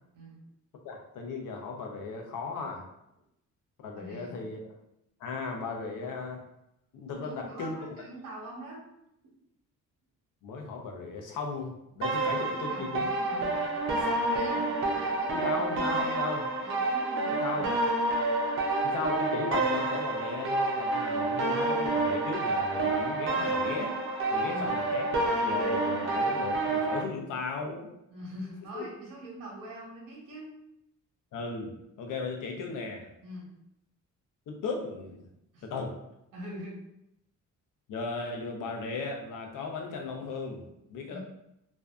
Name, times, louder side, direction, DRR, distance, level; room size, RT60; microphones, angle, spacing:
voice 1, 0.8-2.8 3.8-4.6 5.2-6.4 6.9-7.8 10.4-13.1 15.3-16.4 17.4-17.7 18.8-24.0 24.3-27.9 28.7-28.8 31.3-33.1 34.5-35.2 35.6-35.9 37.9-40.7 40.9-41.2, left 4 dB, 80° left, 2 dB, 0.6 m, -36 dB
voice 2, 3.9-4.4 7.1-8.8 9.2-9.3 12.2-14.6 14.9-17.8 24.4-24.7 28.1-30.5 33.2-33.5 35.5-35.7 36.3-36.8 41.1-41.2, right 1 dB, 85° right, -3 dB, 0.9 m, -43 dB
sound 1, 12.0-27.0, right 2 dB, 40° right, 0.4 m, -29 dB
2.6 x 2.2 x 2.3 m, 0.80 s
wide cardioid pair, 145°, 32 cm